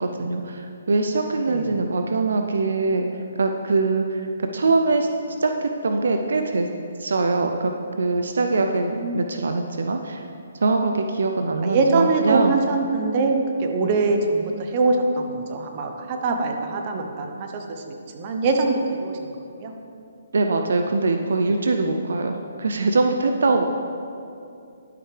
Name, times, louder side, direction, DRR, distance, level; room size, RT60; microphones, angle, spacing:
voice 1, 0.0-3.1 3.4-5.1 5.4-6.7 7.0-7.7 8.0-10.2 10.6-12.6 20.3-23.6, right 3 dB, 75° right, 5 dB, 0.5 m, -22 dB
voice 2, 1.5-1.8 8.6-9.2 11.6-17.8 18.1-19.2 19.6-19.7, right 3 dB, 35° right, 3 dB, 0.8 m, -23 dB
11.5 x 5.8 x 3.3 m, 2.5 s
hypercardioid pair, 150°, 0 cm